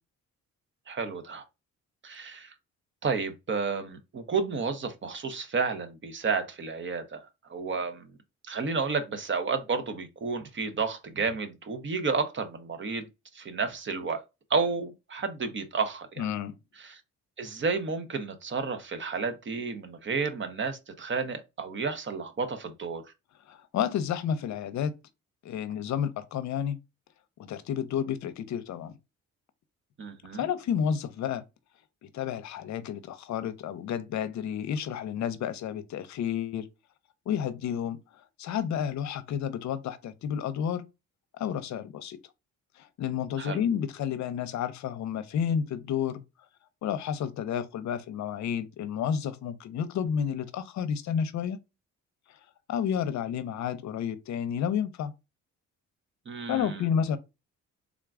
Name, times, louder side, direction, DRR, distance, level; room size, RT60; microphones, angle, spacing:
voice 1, 0.9-1.4 2.0-2.5 3.0-7.2 7.5-8.1 8.5-13.1 13.3-14.2 14.5-16.3 16.8-17.0 17.4-23.0 30.0-30.5 43.4-43.6 56.3-56.9, right 4 dB, 40° right, 0.8 m, -31 dB
voice 2, 16.2-16.5 23.5-24.9 25.4-26.8 27.5-28.9 30.4-31.4 32.0-36.6 37.3-38.0 38.4-40.8 41.4-42.2 42.8-46.2 46.8-51.6 52.7-55.1 56.5-57.2, left 8 dB, 65° left, 0.6 m, -31 dB
3.6 x 2.4 x 3.5 m
cardioid pair, 90°, 30 cm